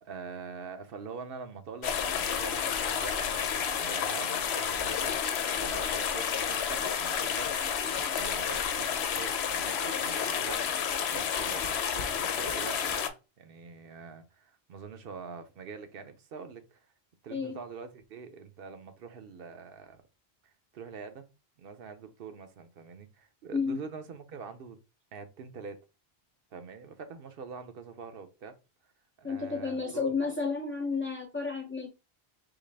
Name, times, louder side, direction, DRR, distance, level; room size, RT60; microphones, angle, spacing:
voice 1, 0.0-7.6 8.1-13.1 13.4-16.8 17.2-20.0 20.4-21.3 21.6-24.8 25.1-25.8 26.5-28.6 29.2-30.1, right 5 dB, 65° right, 0.8 m, -44 dB
sound 1, 1.8-13.1, left 7 dB, 80° left, 0.9 m, -30 dB
voice 2, 29.2-31.9, left 4 dB, 20° left, 0.3 m, -31 dB
4.0 x 3.1 x 3.2 m
omnidirectional pair, 1.1 m